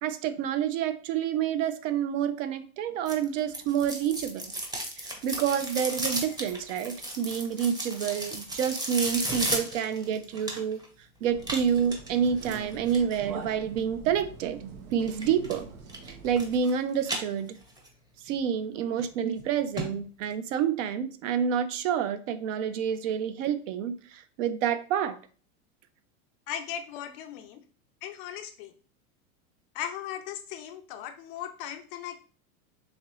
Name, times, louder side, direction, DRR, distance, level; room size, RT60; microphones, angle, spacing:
voice 1, 0.0-4.5 5.0-10.8 11.2-15.7 16.1-17.6 18.3-25.2, right 8 dB, 60° right, 11 dB, 0.6 m, -28 dB
sound 1, 3.1-10.9 11.4-13.2 15.1-15.6 15.9-16.7 17.0-17.9 18.3-18.4 19.0-19.1 19.4-19.5 19.8-19.9 20.2-20.3, right 1 dB, 10° right, 0.7 m, -34 dB
sound 2, 11.2-16.6, right 5 dB, 80° right, 1.1 m, -44 dB
voice 2, 26.5-27.6 28.0-28.7 29.7-32.2, left 10 dB, 40° left, 7 dB, 0.5 m, -38 dB
4.1 x 3.0 x 3.0 m, 0.41 s
supercardioid pair, 130°, 44 cm